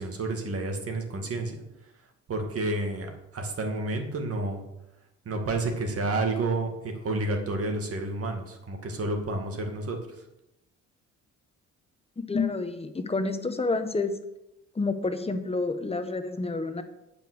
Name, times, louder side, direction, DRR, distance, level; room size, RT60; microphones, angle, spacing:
voice 1, 0.0-1.6 2.3-4.6 5.3-10.0, right 2 dB, 50° right, 3 dB, 2.1 m, -30 dB
voice 2, 12.2-14.2 14.7-16.8, left 3 dB, 20° left, 9 dB, 0.9 m, -29 dB
8.9 x 5.3 x 6.3 m, 0.88 s
cardioid pair, 90°, 30 cm